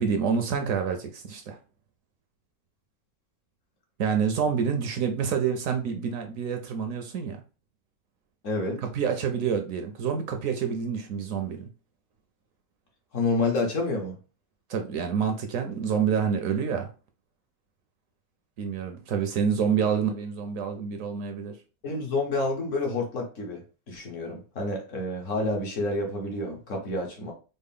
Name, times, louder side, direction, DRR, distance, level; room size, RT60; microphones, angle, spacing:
voice 1, 0.0-1.6 4.0-7.4 8.8-11.7 14.7-16.9 18.6-21.6, right 7 dB, 70° right, 0.9 m, -27 dB
voice 2, 8.4-8.8 13.1-14.2 21.8-27.3, left 2 dB, 55° left, 1.2 m, -29 dB
4.2 x 2.0 x 3.5 m
omnidirectional pair, 1.6 m